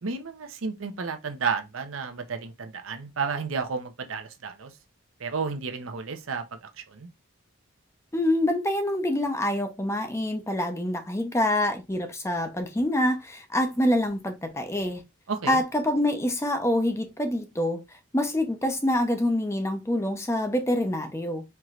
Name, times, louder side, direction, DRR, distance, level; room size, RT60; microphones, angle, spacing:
voice 1, 0.0-4.7 5.2-7.1 15.3-15.6, right 5 dB, 70° right, 0.7 m, -32 dB
voice 2, 8.1-15.0 15.5-17.8 18.1-21.4, left 1 dB, 15° left, 0.5 m, -26 dB
4.5 x 3.0 x 2.4 m
head